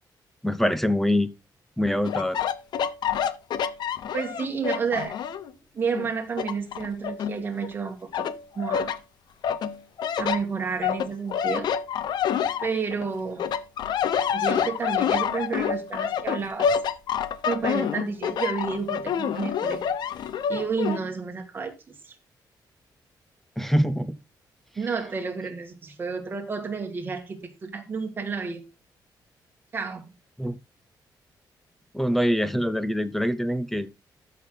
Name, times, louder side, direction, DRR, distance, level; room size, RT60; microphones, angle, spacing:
voice 1, 0.4-1.3 1.8-2.4 23.6-24.2 30.4-30.6 31.9-33.9, equal, 5° left, 0.6 m, -24 dB
sound 1, 2.0-5.5 5.9-7.7 8.1-9.0 9.4-13.1 13.4-21.0, left 8 dB, 65° left, 0.8 m, -27 dB
voice 2, 4.1-5.2 5.7-8.3 8.6-9.0 10.2-11.7 12.6-13.5 14.3-16.8 17.5-19.8 20.1-22.2 24.8-28.6 29.7-30.1, right 5 dB, 25° right, 1.9 m, -31 dB
13.5 x 6.4 x 3.9 m
wide cardioid pair, 180°, 8 cm